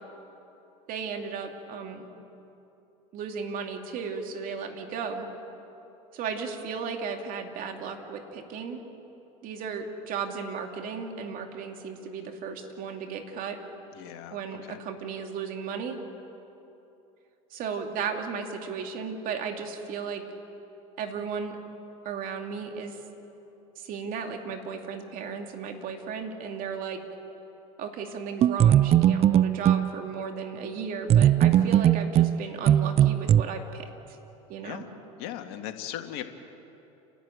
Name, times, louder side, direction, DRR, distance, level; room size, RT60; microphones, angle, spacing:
voice 1, 0.9-2.1 3.1-5.3 6.1-8.8 9.4-13.6 14.3-16.0 17.5-20.2 21.0-21.6 22.0-23.0 23.8-27.0 27.8-34.2 34.5-34.8, right 6 dB, 55° right, 4 dB, 2.8 m, -35 dB
voice 2, 13.9-14.8 31.6-31.9 34.6-34.9 35.2-36.2, left 11 dB, 70° left, 6 dB, 1.9 m, -39 dB
sound 1, 28.4-29.9 31.1-33.4, right 11 dB, 35° right, 0.5 m, -19 dB
30.0 x 12.0 x 9.3 m, 3.0 s
supercardioid pair, 90°, 17 cm